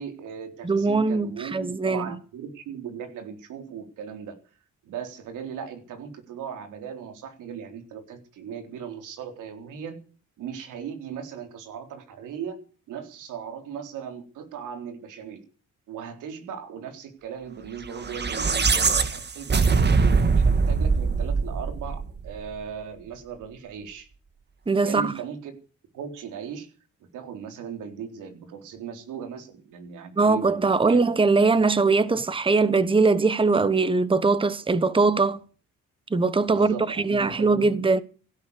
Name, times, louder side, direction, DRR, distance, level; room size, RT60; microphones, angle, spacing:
voice 1, 0.0-4.4 4.8-10.0 10.4-12.6 12.9-15.4 15.9-24.1 24.8-25.6 25.9-26.7 27.1-31.0 32.1-32.2 36.4-37.6, right 7 dB, 85° right, 3.8 m, -38 dB
voice 2, 0.6-2.1 24.7-25.1 30.2-35.4 36.1-38.0, right 3 dB, 15° right, 1.2 m, -21 dB
sound 1, 18.0-22.4, right 4 dB, 35° right, 1.9 m, -22 dB
16.5 x 12.0 x 6.7 m
cardioid pair, 90°, 30 cm